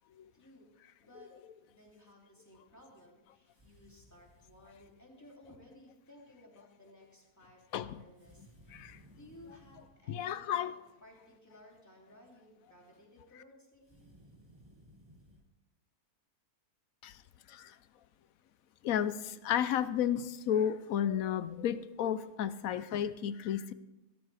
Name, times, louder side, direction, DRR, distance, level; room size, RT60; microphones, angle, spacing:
voice 1, 0.3-1.3 1.6-14.1, left 1 dB, 10° left, -2 dB, 2.8 m, -58 dB
sound 1, 3.5-5.0 8.2-10.0 13.8-15.4, equal, 15° right, 1.8 m, -60 dB
voice 2, 10.1-10.7 17.0-17.2 17.5-17.8 18.8-23.7, left 9 dB, 70° left, 14 dB, 1.0 m, -32 dB
16.0 x 13.5 x 3.4 m, 1.0 s
omnidirectional pair, 1.6 m